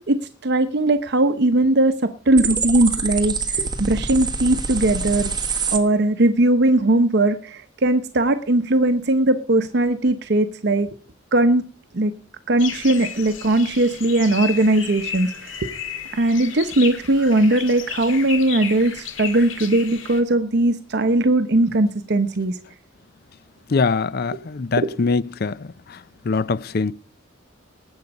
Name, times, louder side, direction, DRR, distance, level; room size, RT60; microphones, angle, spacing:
voice 1, 0.1-5.3 5.7-10.9 11.3-11.6 11.9-12.1 12.5-15.7 16.1-22.6 24.3-24.4 24.8-24.9, right 2 dB, 55° right, 0.8 m, -19 dB
sound 1, 2.4-5.8, right 5 dB, 20° right, 1.4 m, -25 dB
sound 2, 12.6-20.2, left 7 dB, 75° left, 1.9 m, -33 dB
voice 2, 23.7-25.6 26.3-26.9, left 4 dB, 50° left, 0.5 m, -22 dB
19.0 x 8.0 x 5.3 m
head